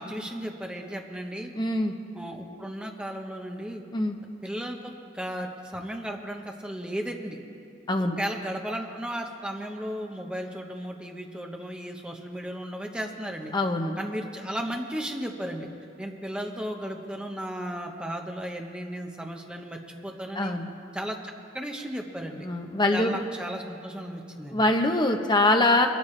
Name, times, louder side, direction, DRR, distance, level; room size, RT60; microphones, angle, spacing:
voice 1, 0.0-1.5 2.1-3.8 4.4-7.4 8.0-13.5 14.0-15.7 16.0-20.5 20.9-22.5 22.9-24.6, equal, 5° right, 2 dB, 1.0 m, -35 dB
voice 2, 1.5-1.9 3.9-4.2 7.9-8.2 13.5-14.0 20.4-20.7 22.4-23.2 24.5-25.9, left 2 dB, 25° left, 4 dB, 0.8 m, -23 dB
22.5 x 13.5 x 3.3 m, 2.6 s
head